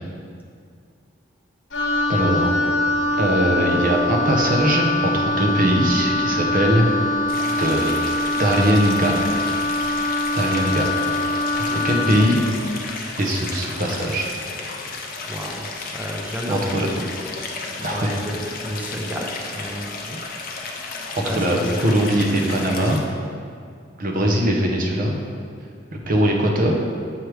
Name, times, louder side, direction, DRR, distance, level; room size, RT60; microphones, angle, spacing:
Wind instrument woodwind instrument, 1.7-12.4, left 2 dB, 70° left, 1.0 m, -23 dB
voice 1, 2.1-2.5 3.2-6.9 7.6-7.9 8.4-9.4 10.3-10.9 11.7-12.4 13.1-14.3 16.5-16.9 17.8-18.2 21.1-23.0 24.0-25.1 26.1-26.8, right 1 dB, 45° right, 1 dB, 0.8 m, -21 dB
Stream, 7.3-23.0, left 3 dB, 50° left, 0.6 m, -33 dB
voice 2, 15.3-17.1 17.8-20.2 21.2-22.0, equal, 10° right, -1 dB, 0.5 m, -31 dB
7.5 x 3.3 x 4.7 m, 2.2 s
head